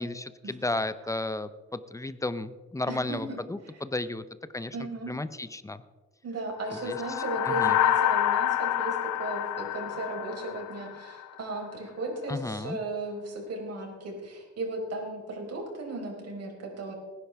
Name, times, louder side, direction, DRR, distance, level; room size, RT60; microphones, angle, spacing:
voice 1, 0.0-4.2 4.5-4.8 5.1-5.8 6.7-7.8 12.3-12.8, left 2 dB, 10° left, 13 dB, 0.7 m, -34 dB
voice 2, 2.9-3.4 4.7-5.1 6.2-16.9, right 2 dB, 55° right, 0 dB, 4.7 m, -36 dB
sound 1, 6.7-11.3, left 11 dB, 65° left, 0.6 m, -27 dB
19.5 x 10.5 x 3.5 m, 1.2 s
cardioid pair, 90°, 30 cm